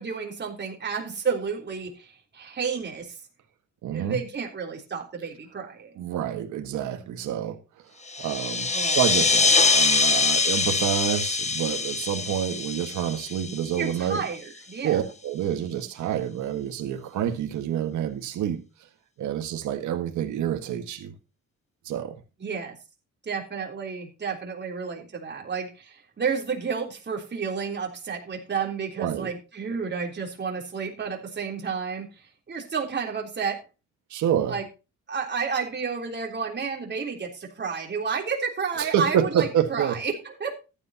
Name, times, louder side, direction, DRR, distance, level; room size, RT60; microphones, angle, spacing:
voice 1, 0.0-3.2 3.9-5.9 8.7-9.0 13.7-15.0 22.4-22.8 23.2-32.1 32.5-33.6 34.5-34.6 35.1-40.5, right 5 dB, 35° right, 3.6 m, -31 dB
voice 2, 3.8-4.2 6.0-7.6 8.2-14.2 14.8-18.6 19.2-21.1 21.9-22.2 29.0-29.3 34.1-34.6 38.8-40.0, right 10 dB, 80° right, 1.7 m, -28 dB
sound 1, 8.1-14.2, left 4 dB, 20° left, 1.1 m, -24 dB
14.5 x 10.5 x 2.9 m
cardioid pair, 90°, 30 cm